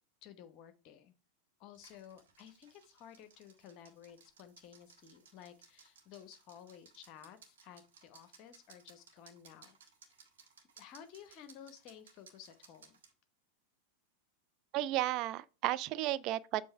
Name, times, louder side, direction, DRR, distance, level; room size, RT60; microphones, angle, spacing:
voice 1, 0.2-1.1 1.6-9.8 10.8-13.0, left 9 dB, 40° left, 0.9 m, -54 dB
sound 1, 1.7-13.1, right 6 dB, 60° right, 1.6 m, -62 dB
voice 2, 14.7-16.7, right 15 dB, 40° right, 0.4 m, -33 dB
7.6 x 3.1 x 5.6 m
figure-of-eight pair, 90°, 0 cm